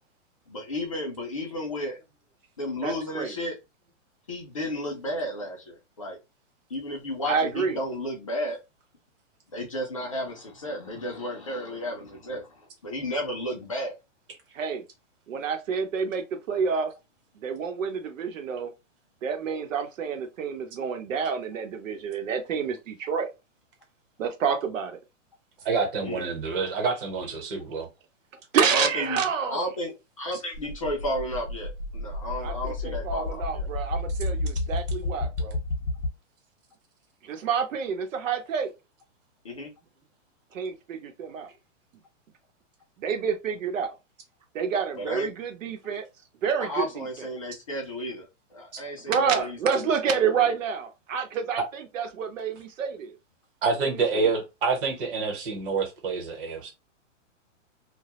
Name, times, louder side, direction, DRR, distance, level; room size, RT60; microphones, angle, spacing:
voice 1, 0.5-2.0 2.6-3.6 4.3-6.2 6.7-8.6 9.5-14.0 26.0-26.3 28.7-29.2 29.5-29.9 30.2-33.7 39.4-39.7 45.0-45.3 46.6-48.3 48.5-50.5, left 1 dB, 30° left, 0.4 m, -33 dB
voice 2, 2.8-3.3 7.3-7.8 14.5-14.8 15.3-16.9 17.4-18.7 19.2-23.3 24.2-25.0 28.5-29.7 32.4-35.6 37.2-38.7 40.5-41.5 43.0-43.9 44.5-46.1 46.4-47.3 49.1-53.2 53.8-53.9 54.2-54.3, right 6 dB, 85° right, 0.8 m, -28 dB
voice 3, 25.6-27.9 48.7-48.8 53.6-56.7, right 4 dB, 45° right, 1.0 m, -27 dB
sound 1, 30.5-36.1, left 2 dB, 70° left, 0.6 m, -31 dB
2.2 x 2.0 x 2.8 m
hypercardioid pair, 170°, 38 cm